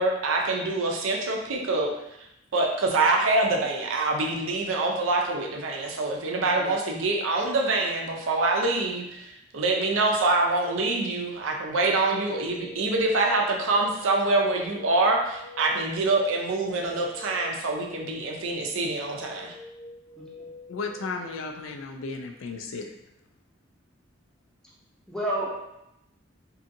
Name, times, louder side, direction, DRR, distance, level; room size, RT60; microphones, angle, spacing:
voice 1, 0.0-1.9 2.5-19.5, right 2 dB, 80° right, 1 dB, 0.5 m, -25 dB
voice 2, 6.4-6.7 20.2-20.5 25.1-25.8, right 1 dB, 5° left, -6 dB, 0.6 m, -32 dB
sound 1, 11.7-21.2, left 1 dB, 65° left, 0.9 m, -46 dB
voice 3, 20.7-22.9, left 4 dB, 80° left, 4 dB, 0.4 m, -34 dB
2.7 x 2.6 x 2.5 m, 0.85 s
head